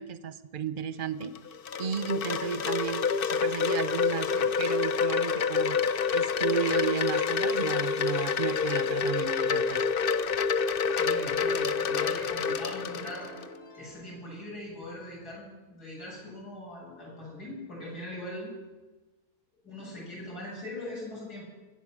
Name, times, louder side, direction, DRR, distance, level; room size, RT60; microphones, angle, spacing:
voice 1, 0.0-1.3 1.8-9.8, right 8 dB, 45° right, 14 dB, 0.7 m, -34 dB
Wind chime, 1.2-13.5, left 5 dB, 60° left, 0.6 m, -27 dB
voice 2, 10.9-13.3 13.8-18.5 19.6-21.4, left 1 dB, 80° left, -4 dB, 8.0 m, -41 dB
sound 1, 12.4-15.2, equal, 35° left, 1.9 m, -51 dB
22.5 x 8.3 x 7.5 m, 1.2 s
omnidirectional pair, 1.7 m